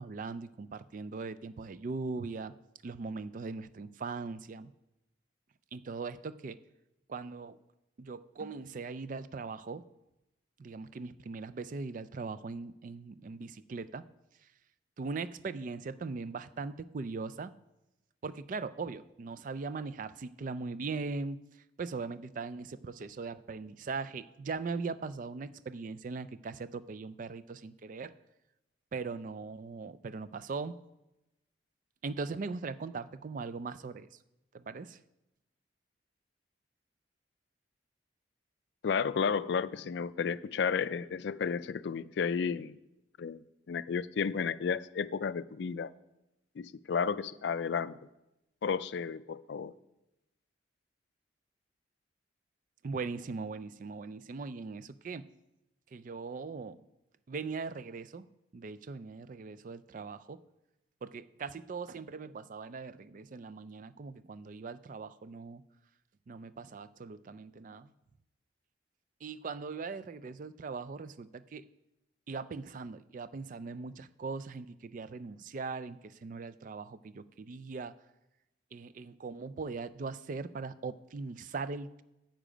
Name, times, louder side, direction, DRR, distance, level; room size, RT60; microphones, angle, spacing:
voice 1, 0.0-2.5 2.8-4.7 5.7-6.6 7.1-7.6 8.0-9.8 10.6-14.1 14.4-14.5 15.0-17.5 18.2-28.2 28.9-30.8 32.0-34.2 34.5-35.0 52.8-55.2 55.9-56.8 57.3-58.3 58.5-60.4 61.0-65.6 66.3-67.9 69.2-71.7 72.3-77.9 78.7-82.0, right 4 dB, 45° right, 0.3 m, -40 dB
voice 2, 38.8-42.8 43.2-43.4 43.7-45.9 46.6-48.0 48.6-49.7, left 6 dB, 60° left, 0.3 m, -32 dB
10.0 x 7.6 x 5.0 m
head